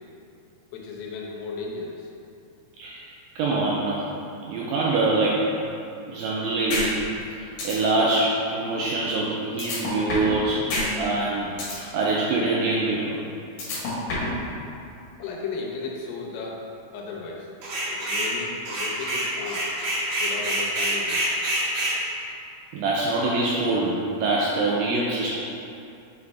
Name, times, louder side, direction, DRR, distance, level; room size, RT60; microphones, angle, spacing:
voice 1, 0.7-2.1 15.2-16.6 16.9-17.5 17.9-19.7 20.2-21.2, left 4 dB, 85° left, -2 dB, 2.9 m, -35 dB
voice 2, 3.4-4.1 4.5-5.5 6.1-6.9 7.3-10.7 11.0-13.2 22.7-25.4, right 2 dB, 90° right, -4 dB, 2.0 m, -24 dB
sound 1, 6.7-6.9 7.2-7.3 7.6-7.7 9.6-10.4 10.7-10.9 11.2-11.8 13.6-14.4, left 2 dB, 65° left, 2.7 m, -27 dB
sound 2, 17.6-18.3 18.7-22.0, right 1 dB, 65° right, 2.3 m, -26 dB
7.8 x 4.1 x 3.4 m, 2.7 s
omnidirectional pair, 4.6 m